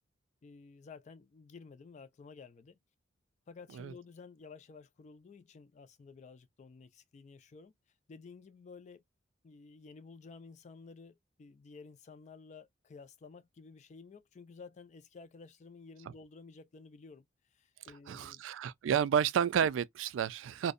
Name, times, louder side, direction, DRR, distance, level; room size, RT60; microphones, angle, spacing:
voice 1, 0.4-2.8 3.5-7.7 8.1-9.0 9.4-17.3 17.5-18.4, left 4 dB, 40° left, 0.3 m, -53 dB
voice 2, 18.1-20.7, right 8 dB, 80° right, 0.3 m, -30 dB
2.6 x 2.1 x 2.4 m
head